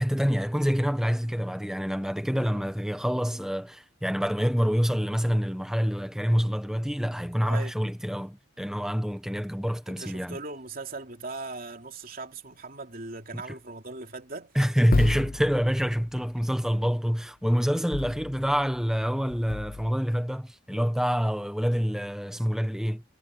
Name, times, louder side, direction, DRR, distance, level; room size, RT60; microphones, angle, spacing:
voice 1, 0.0-10.4 13.3-13.4 14.5-23.0, equal, 5° right, 1.2 m, -26 dB
voice 2, 2.3-2.6 7.4-7.8 9.9-14.5, right 3 dB, 45° right, 3.1 m, -39 dB
sound 1, 14.9-16.1 17.9-18.8 19.3-19.9, left 3 dB, 45° left, 0.5 m, -32 dB
head